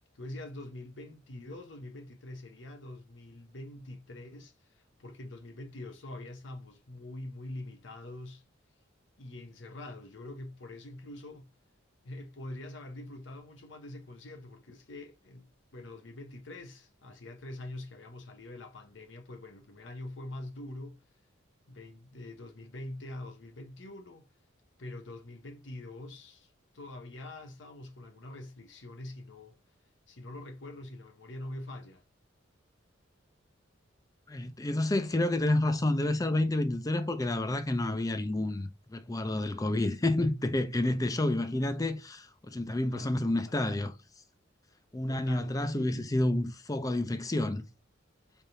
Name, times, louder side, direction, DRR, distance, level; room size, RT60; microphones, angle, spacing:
voice 1, 0.1-8.4 9.2-11.5 12.0-21.0 21.7-24.3 24.8-29.6 30.1-32.0 42.9-43.6 45.1-46.0, left 1 dB, 70° left, 0.9 m, -44 dB
voice 2, 34.3-43.9 44.9-47.6, left 1 dB, 20° left, 0.5 m, -29 dB
4.4 x 3.4 x 2.6 m
head